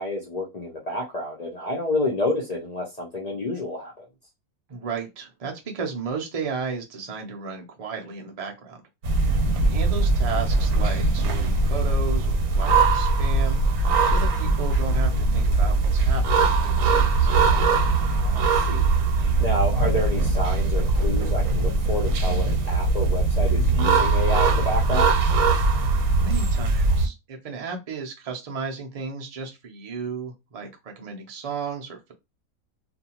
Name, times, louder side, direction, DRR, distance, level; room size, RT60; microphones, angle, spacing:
voice 1, 0.0-4.0 18.1-18.4 18.7-18.9 19.2-25.2, left 1 dB, 75° left, -2 dB, 0.3 m, -29 dB
voice 2, 4.7-8.8 9.6-13.6 14.0-17.3 26.2-32.1, right 5 dB, 55° right, 1 dB, 0.4 m, -34 dB
sound 1, 9.0-27.1, right 3 dB, 80° right, 1.1 m, -21 dB
2.5 x 2.3 x 2.8 m, 0.23 s
omnidirectional pair, 1.5 m